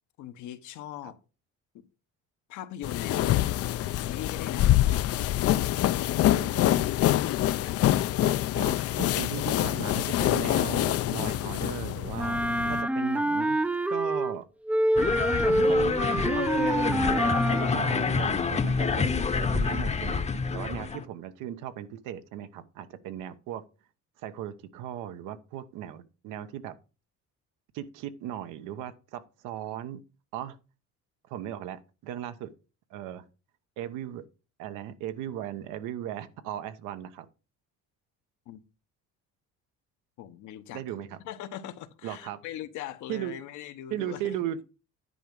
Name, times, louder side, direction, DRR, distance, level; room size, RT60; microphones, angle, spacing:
voice 1, 0.2-1.2 1.7-1.8 2.5-4.7 38.5-38.6 40.2-40.8 41.2-44.3, left 11 dB, 75° left, 1.1 m, -40 dB
sound 1, 2.8-12.8, left 13 dB, 50° left, 0.5 m, -25 dB
voice 2, 6.3-6.9 8.2-12.4 12.7-13.6 13.9-14.5 15.6-16.8 17.5-20.2 20.5-23.6 24.2-26.7 27.7-30.0 30.3-30.6 31.3-32.5 32.9-33.2 33.8-34.2 34.6-37.3 40.7-41.2 42.0-42.4 43.1-43.3 43.9-44.6, right 11 dB, 85° right, 1.0 m, -37 dB
Wind instrument woodwind instrument, 12.2-14.4 14.7-17.8, right 1 dB, 5° right, 0.4 m, -26 dB
sound 2, 15.0-21.0, left 4 dB, 20° left, 0.8 m, -27 dB
10.0 x 4.8 x 5.4 m
cardioid pair, 100°, 30 cm